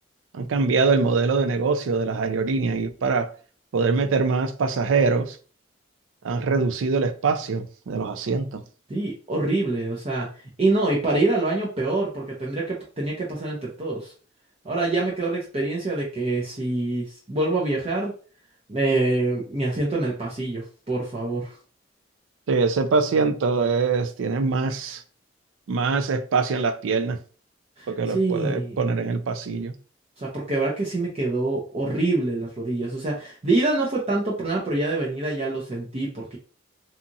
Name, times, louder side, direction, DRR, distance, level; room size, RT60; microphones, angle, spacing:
voice 1, 0.3-3.3 3.7-5.4 6.2-8.6 22.5-25.0 25.7-27.2 27.9-29.7, right 4 dB, 80° right, 0.4 m, -23 dB
voice 2, 8.9-10.3 10.6-14.1 14.6-18.1 18.7-21.5 27.8-28.8 30.2-36.4, right 2 dB, 30° right, 0.6 m, -25 dB
2.8 x 2.4 x 2.6 m
head